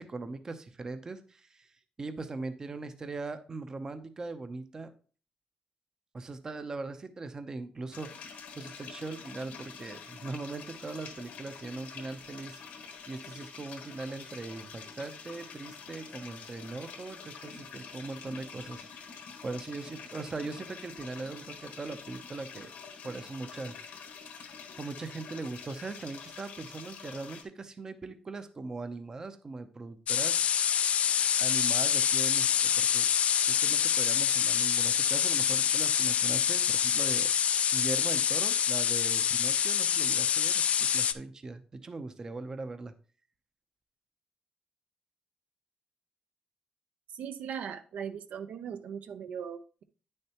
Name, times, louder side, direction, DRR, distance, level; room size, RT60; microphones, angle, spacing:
voice 1, 0.0-1.7 2.0-4.9 6.1-12.6 13.1-22.7 23.0-23.8 24.1-24.2 24.8-30.4 31.4-33.1 33.5-42.9, right 3 dB, 25° right, 10 dB, 0.6 m, -40 dB
sound 1, 7.9-27.4, left 6 dB, 90° left, 1.3 m, -47 dB
sound 2, 30.1-41.1, left 8 dB, 60° left, 0.4 m, -26 dB
voice 2, 47.1-49.8, right 7 dB, 75° right, 10 dB, 0.6 m, -39 dB
9.3 x 6.5 x 2.9 m, 0.38 s
wide cardioid pair, 160°, 3 cm